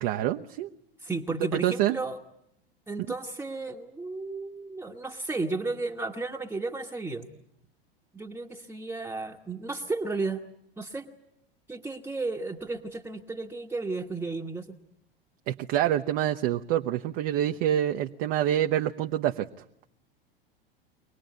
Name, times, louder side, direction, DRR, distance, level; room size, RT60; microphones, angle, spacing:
voice 1, 0.0-0.7 1.6-2.0 15.5-19.5, right 12 dB, 45° right, 4 dB, 0.8 m, -26 dB
voice 2, 1.0-2.2 2.9-7.3 8.1-10.4 10.8-11.1 11.7-14.7, right 3 dB, 10° right, 1 dB, 1.2 m, -33 dB
24.0 x 19.0 x 9.4 m, 0.80 s
hypercardioid pair, 90°, 29 cm